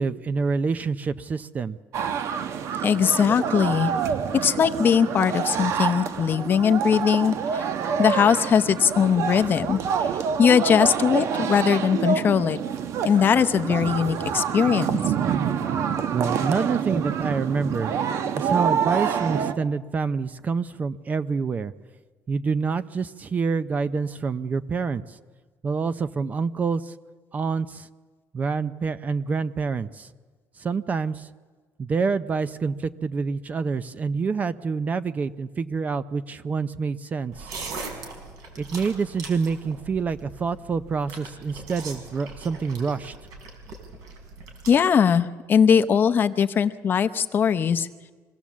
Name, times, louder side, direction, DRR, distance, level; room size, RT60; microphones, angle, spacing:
voice 1, 0.0-1.8 16.1-17.9 18.4-21.7 22.3-25.2 25.6-26.9 27.3-27.9 28.3-30.1 30.6-31.3 31.8-37.5 38.6-43.1, right 5 dB, 25° right, 13 dB, 0.5 m, -27 dB
sound 1, 1.9-19.5, right 7 dB, 55° right, 1.0 m, -27 dB
voice 2, 2.8-3.9 4.4-7.7 8.0-10.1 10.4-12.6 13.0-15.0 44.7-47.9, left 7 dB, 35° left, 11 dB, 0.7 m, -20 dB
sound 2, 37.3-44.7, right 4 dB, 70° right, 4.5 m, -40 dB
25.0 x 17.0 x 7.3 m, 1.4 s
cardioid pair, 155°, 6 cm